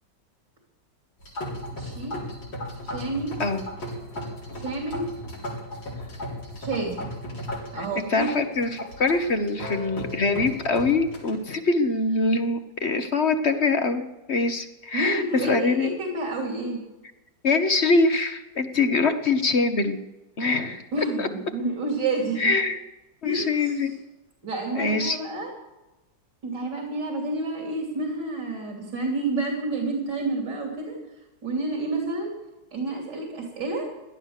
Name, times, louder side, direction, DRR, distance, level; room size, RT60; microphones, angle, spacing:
sound 1, 1.2-11.3, left 1 dB, 80° left, 5.0 m, -36 dB
voice 1, 1.8-2.3 2.8-3.4 4.5-5.1 6.6-7.1 7.7-8.3 14.9-16.8 20.9-22.5 23.2-23.9 24.4-25.5 26.4-31.0 31.4-32.3 32.7-33.9, right 2 dB, 65° right, 0 dB, 3.7 m, -29 dB
voice 2, 7.8-15.9 17.4-20.0 20.4-20.8 21.2-21.3 22.4-22.8 23.2-23.9 24.7-25.2, left 3 dB, 40° left, 8 dB, 1.1 m, -24 dB
17.5 x 12.0 x 6.6 m, 1.0 s
omnidirectional pair, 2.0 m